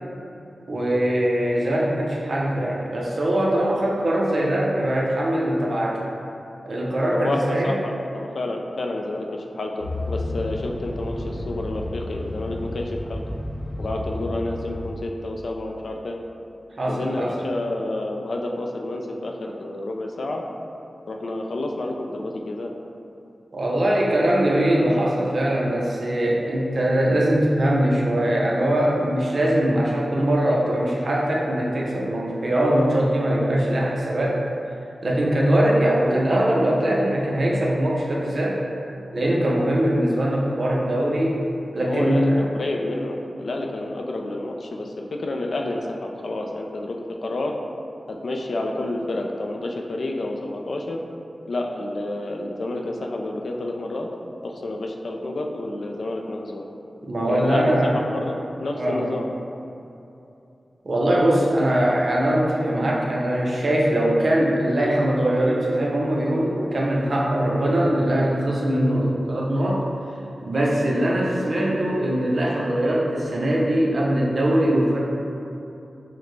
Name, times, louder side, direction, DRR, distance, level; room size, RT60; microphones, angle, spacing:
voice 1, 0.7-6.0 6.6-7.8 16.8-17.3 23.5-34.4 35.0-38.6 39.1-41.4 41.7-42.5 57.0-58.0 58.7-59.1 60.8-69.8 70.4-75.0, right 1 dB, 55° right, -4 dB, 0.7 m, -21 dB
voice 2, 7.1-13.2 13.8-16.2 16.9-20.4 21.1-22.7 41.8-47.6 48.1-51.0 51.5-54.1 54.4-56.6 57.2-59.3, left 2 dB, 70° left, 1 dB, 0.4 m, -29 dB
sound 1, 9.8-14.9, left 1 dB, 20° left, 1.0 m, -32 dB
5.9 x 2.1 x 3.2 m, 2.8 s
wide cardioid pair, 110°, 0 cm